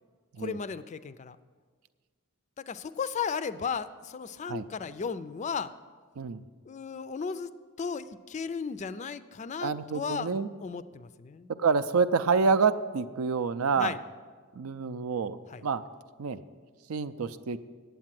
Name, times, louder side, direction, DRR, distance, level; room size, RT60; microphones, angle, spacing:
voice 1, 0.4-1.4 2.6-5.7 6.7-7.5 7.8-10.3 10.6-11.5 13.8-14.0 15.5-15.6, left 6 dB, 35° left, 14 dB, 0.3 m, -35 dB
voice 2, 9.6-10.5 11.6-14.0 14.5-15.8 16.2-16.4 16.9-17.6, right 5 dB, 80° right, 12 dB, 0.5 m, -27 dB
8.6 x 8.0 x 7.5 m, 1.5 s
head